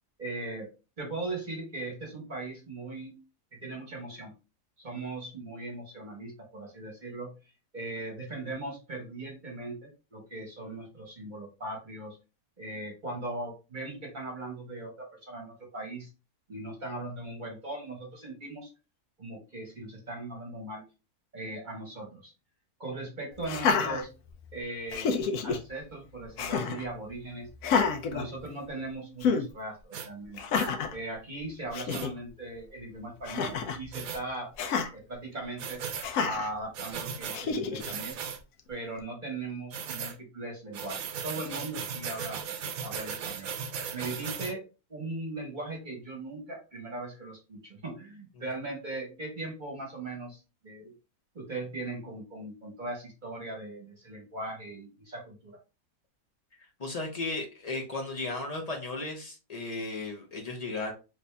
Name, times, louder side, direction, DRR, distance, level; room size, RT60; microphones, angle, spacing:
voice 1, 0.2-0.7 1.0-3.2 3.5-4.3 4.8-7.3 7.7-12.2 12.6-16.1 16.5-18.7 19.2-20.8 21.3-22.3 22.8-24.1 24.5-25.1 25.4-27.5 28.1-30.6 30.9-34.5 34.9-35.9 36.2-38.2 38.7-42.4 42.8-43.5 43.9-50.9 51.3-55.6, right 2 dB, 30° right, -1 dB, 1.2 m, -39 dB
Laughter, 23.4-24.5 24.9-25.6 26.4-26.9 27.6-28.8 29.2-29.5 30.4-31.0 31.5-31.6 31.7-32.1 33.2-33.8 34.6-34.9 36.0-36.5 37.3-37.9, left 5 dB, 70° left, 0.9 m, -29 dB
sound 1, 29.9-30.1 30.5-30.7 31.9-32.1 33.9-34.2 35.6-36.1 36.7-37.4 37.8-38.4 39.7-40.2 40.7-44.5, right 7 dB, 65° right, 0.9 m, -37 dB
voice 2, 56.6-60.9, left 3 dB, 50° left, 1 dB, 0.4 m, -35 dB
3.2 x 2.7 x 3.3 m, 0.30 s
omnidirectional pair, 1.8 m